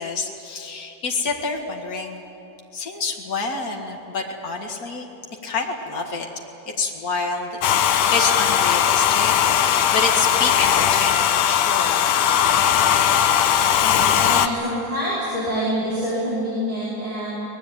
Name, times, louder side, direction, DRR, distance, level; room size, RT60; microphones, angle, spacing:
voice 1, 0.0-2.2 2.7-5.1 5.4-6.3 6.8-9.3 9.7-12.1, left 4 dB, 65° left, 1 dB, 0.8 m, -27 dB
Domestic sounds home sounds, 7.6-14.5, left 9 dB, 90° left, 1.7 m, -18 dB
voice 2, 13.8-17.4, equal, 10° right, -9 dB, 4.9 m, -26 dB
23.5 x 20.0 x 9.1 m, 2.9 s
omnidirectional pair, 5.0 m